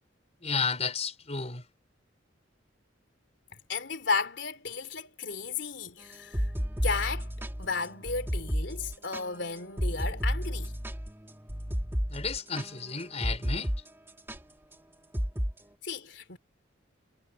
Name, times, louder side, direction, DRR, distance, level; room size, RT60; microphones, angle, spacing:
voice 1, 0.4-1.6 12.1-13.7, left 5 dB, 35° left, 4.8 m, -32 dB
voice 2, 3.7-6.5 6.8-7.3 7.6-10.7 15.8-16.4, left 4 dB, 70° left, 3.4 m, -34 dB
sound 1, 6.1-13.8 14.1-14.4 15.1-15.5, equal, 15° right, 2.2 m, -32 dB
head